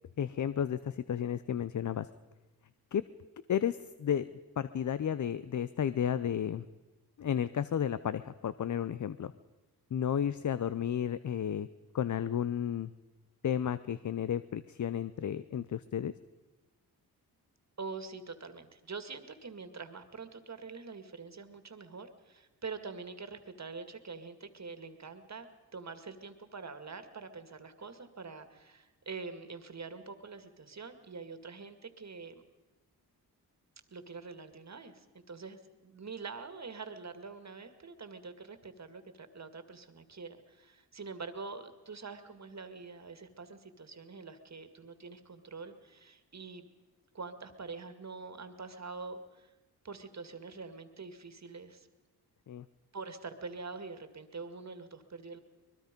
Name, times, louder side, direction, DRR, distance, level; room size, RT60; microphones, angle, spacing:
voice 1, 0.2-2.1 2.9-3.0 3.5-4.3 4.6-6.6 7.2-9.3 9.9-11.7 11.9-12.9 13.4-16.1 52.5-52.6, left 9 dB, 50° left, 15 dB, 0.7 m, -32 dB
voice 2, 17.8-32.4 33.9-46.7 47.1-49.5 49.8-51.9 52.9-55.4, right 4 dB, 45° right, 9 dB, 2.1 m, -45 dB
23.5 x 21.0 x 5.3 m, 1.2 s
cardioid pair, 55°, 38 cm